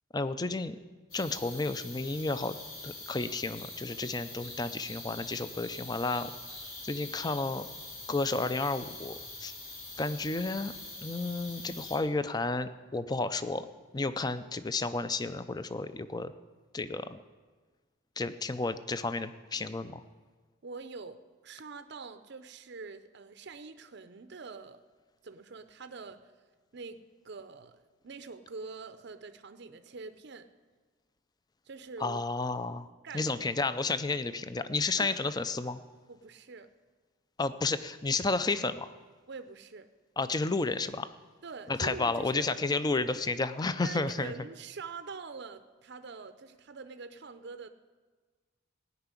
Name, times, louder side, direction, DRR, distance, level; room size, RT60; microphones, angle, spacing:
voice 1, 0.1-0.8 1.1-2.6 2.8-6.3 6.8-7.7 8.1-9.5 10.0-10.7 11.0-13.7 13.9-16.3 16.7-17.2 18.2-20.0 32.0-32.9 33.1-35.8 37.4-38.9 40.2-41.1 41.7-44.3, left 3 dB, 20° left, 12 dB, 0.4 m, -32 dB
sound 1, 1.1-12.0, left 2 dB, 85° left, 3.9 m, -44 dB
voice 2, 20.6-24.8 25.2-26.3 26.7-30.5 31.6-32.2 33.0-33.3 35.0-35.2 36.1-36.7 39.3-39.9 41.4-42.5 43.8-47.7, right 4 dB, 55° right, 10 dB, 0.6 m, -45 dB
16.5 x 5.9 x 9.8 m, 1.4 s
head